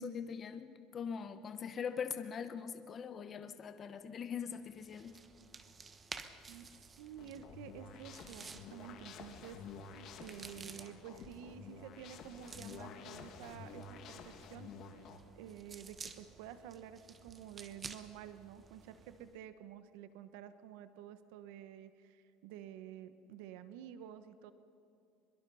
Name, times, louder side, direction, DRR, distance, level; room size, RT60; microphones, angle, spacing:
voice 1, 0.0-5.2, left 6 dB, 30° left, 9 dB, 0.9 m, -42 dB
sound 1, 4.7-19.4, right 4 dB, 20° right, 1.1 m, -54 dB
voice 2, 6.5-15.0 15.4-24.5, right 10 dB, 80° right, 12 dB, 1.0 m, -51 dB
sound 2, 7.2-15.2, left 5 dB, 45° left, 1.8 m, -51 dB
23.5 x 22.0 x 5.6 m, 2.7 s
cardioid pair, 150°, 0 cm